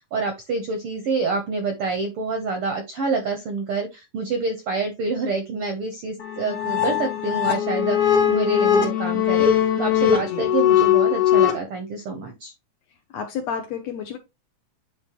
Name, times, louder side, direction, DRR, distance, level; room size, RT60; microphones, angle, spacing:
voice 1, 0.1-12.5, right 3 dB, 75° right, 1.3 m, -27 dB
sound 1, 6.2-11.5, left 9 dB, 90° left, 0.8 m, -20 dB
voice 2, 13.1-14.2, left 7 dB, 75° left, 1.7 m, -30 dB
9.5 x 3.8 x 2.9 m
omnidirectional pair, 3.8 m